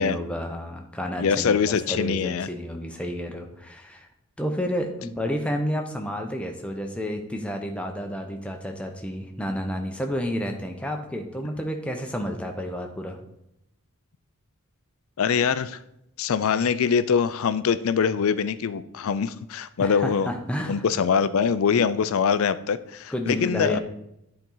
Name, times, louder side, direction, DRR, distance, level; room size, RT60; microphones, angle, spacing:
voice 1, 0.0-4.1 4.4-13.2 19.8-20.8 23.1-23.8, equal, 5° left, 3 dB, 0.7 m, -30 dB
voice 2, 1.2-2.5 15.2-15.8 16.2-20.3 20.7-23.8, left 6 dB, 70° left, 14 dB, 0.4 m, -23 dB
9.7 x 4.3 x 3.9 m, 0.81 s
head